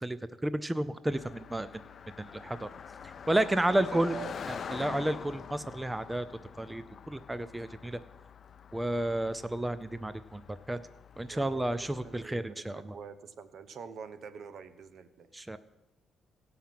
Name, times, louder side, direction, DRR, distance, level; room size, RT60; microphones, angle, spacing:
voice 1, 0.4-1.7 2.2-2.7 3.3-4.1 4.5-6.3 6.6-8.0 8.7-10.8 11.2-13.0 15.3-15.6, right 1 dB, 10° right, 14 dB, 0.5 m, -31 dB
Car passing by, 1.1-12.3, left 7 dB, 50° left, 0.5 m, -46 dB
voice 2, 3.7-4.4 11.3-11.6 12.0-15.3, right 6 dB, 65° right, 12 dB, 0.9 m, -45 dB
17.0 x 5.8 x 7.6 m, 1.0 s
cardioid pair, 90°, 0 cm